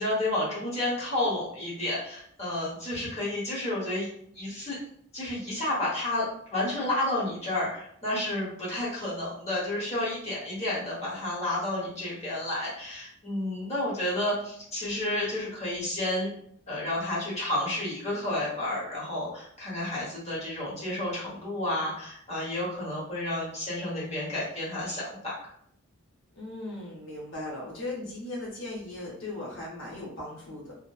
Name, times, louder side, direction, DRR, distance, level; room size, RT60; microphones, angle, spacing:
voice 1, 0.0-4.1 4.3-4.8 5.1-6.3 6.5-16.3 16.7-25.3, left 1 dB, 30° left, -7 dB, 1.0 m, -31 dB
voice 2, 26.4-30.7, left 2 dB, 60° left, -5 dB, 0.8 m, -38 dB
2.7 x 2.1 x 2.3 m, 0.66 s
head